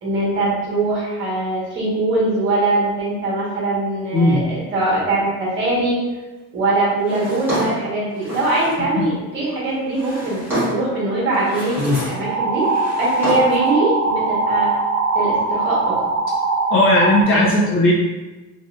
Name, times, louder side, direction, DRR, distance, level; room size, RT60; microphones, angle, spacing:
voice 1, 0.0-6.0 6.5-10.4 10.7-12.7 13.0-14.7 15.1-16.0, right 2 dB, 35° right, -6 dB, 1.4 m, -21 dB
Drawer open or close, 7.0-8.9 9.7-10.9 11.3-12.3 12.5-13.7, equal, 5° right, 1.4 m, -28 dB
sound 1, 12.2-17.2, right 3 dB, 50° right, 0.6 m, -21 dB
voice 2, 16.7-17.9, left 1 dB, 40° left, -3 dB, 0.5 m, -16 dB
4.1 x 3.1 x 2.5 m, 1.2 s
cardioid pair, 180°, 34 cm